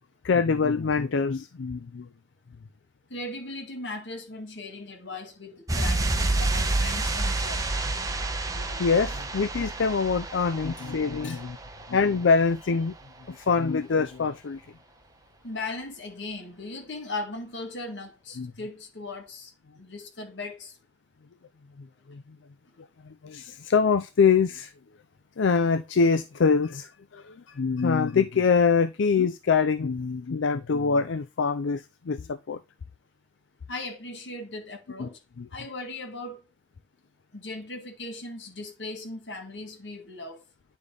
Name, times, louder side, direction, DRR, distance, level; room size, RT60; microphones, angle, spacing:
voice 1, 0.2-2.1 8.5-11.6 11.9-12.9 13.3-14.6 18.4-18.5 22.1-22.2 23.1-24.7 25.4-32.6 35.0-35.1 35.4-35.5, left 5 dB, 90° left, 0.5 m, -24 dB
voice 2, 3.1-7.6 10.8-10.9 11.2-11.4 15.4-19.5 19.8-20.7 33.7-35.2 35.5-36.4 37.3-40.4, left 2 dB, 75° left, 2.2 m, -38 dB
sound 1, 5.7-12.2 12.4-12.6, right 2 dB, 20° right, 1.0 m, -29 dB
9.8 x 4.2 x 5.0 m
head